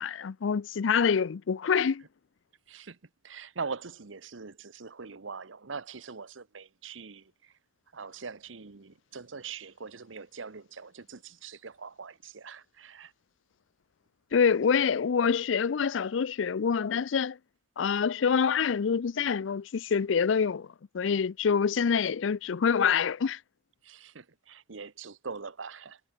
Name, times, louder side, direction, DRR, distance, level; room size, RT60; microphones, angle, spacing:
voice 1, 0.0-2.0 14.3-17.4 17.8-20.7 20.9-23.4, left 6 dB, 80° left, 0.5 m, -26 dB
voice 2, 2.7-3.0 3.2-7.5 7.9-13.1 23.8-26.0, right 5 dB, 85° right, 1.0 m, -42 dB
head